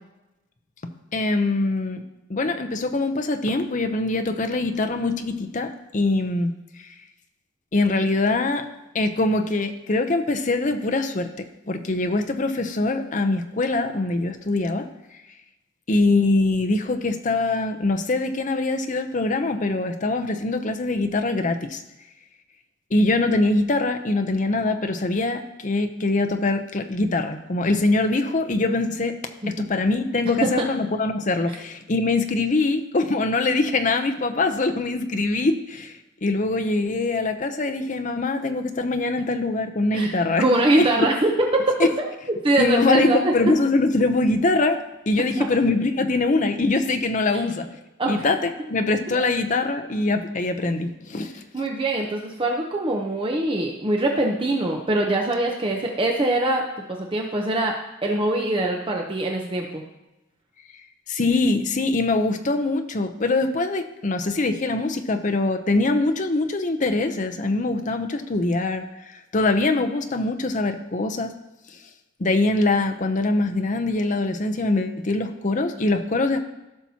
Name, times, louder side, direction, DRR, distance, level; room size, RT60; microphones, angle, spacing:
voice 1, 1.1-2.0 2.3-6.5 7.7-8.6 8.9-14.8 15.9-21.8 22.9-29.1 29.5-40.4 41.8-41.9 42.6-44.8 45.1-47.7 48.1-51.3 61.1-71.3 72.2-76.4, left 2 dB, 40° left, 7 dB, 0.6 m, -23 dB
voice 2, 39.9-41.5 42.0-42.1 42.4-43.3 45.4-45.5 47.3-47.4 48.0-48.2 49.1-49.3 51.5-56.6 57.1-57.7 58.0-59.8, right 2 dB, 25° right, 0 dB, 0.7 m, -23 dB
15.5 x 5.9 x 2.8 m, 0.99 s
head